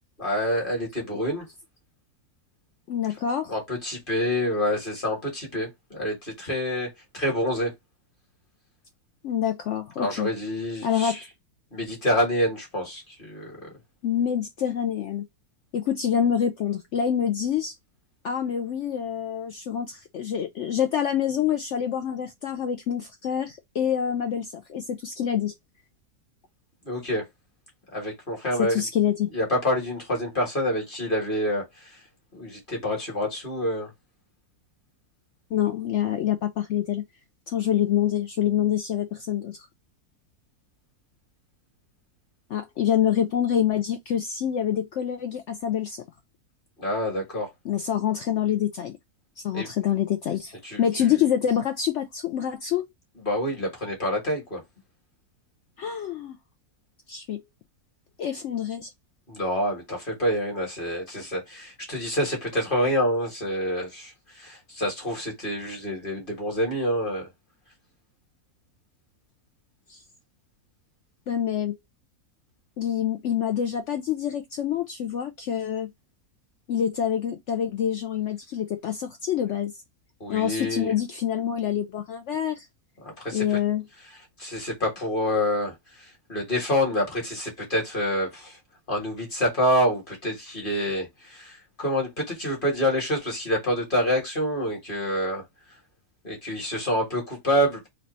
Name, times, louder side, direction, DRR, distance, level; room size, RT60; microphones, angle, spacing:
voice 1, 0.2-1.4 3.5-6.9 7.1-7.7 10.0-11.2 11.7-13.7 26.8-27.2 27.9-28.9 29.3-32.0 32.3-33.9 46.8-47.5 49.5-49.7 50.6-51.2 53.1-54.6 59.3-67.3 80.2-80.9 83.0-83.6 84.0-88.6 88.9-95.4 96.2-97.9, equal, 35° left, 1.5 m, -27 dB
voice 2, 2.9-3.5 9.2-10.3 10.8-11.2 14.0-15.2 15.7-17.7 18.2-25.5 28.6-29.3 35.5-37.0 37.5-39.7 42.5-46.0 47.6-49.0 49.4-52.9 55.8-56.4 57.1-57.4 58.2-58.9 69.9-70.0 71.3-71.8 72.8-75.9 76.7-79.8 80.3-82.7 83.3-83.8, left 9 dB, 70° left, 0.7 m, -26 dB
3.3 x 2.5 x 4.0 m
omnidirectional pair, 1.7 m